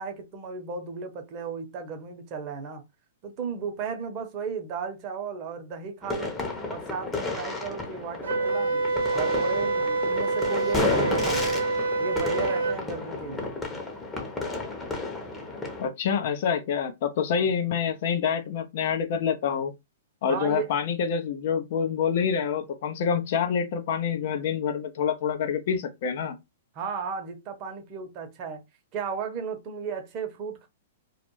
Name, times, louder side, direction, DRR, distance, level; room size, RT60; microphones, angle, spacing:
voice 1, 0.0-2.8 3.2-6.4 6.7-8.8 9.1-11.5 12.0-13.5 17.4-17.5 20.3-20.7 26.7-28.6 28.9-30.7, right 6 dB, 40° right, 0.8 m, -35 dB
sound 1, 6.0-15.9, left 3 dB, 15° left, 0.7 m, -32 dB
Wind instrument woodwind instrument, 8.2-12.8, right 3 dB, 85° right, 0.6 m, -26 dB
voice 2, 15.8-19.7 20.2-26.4, left 7 dB, 55° left, 0.5 m, -27 dB
2.3 x 2.0 x 3.0 m
hypercardioid pair, 115°, 0 cm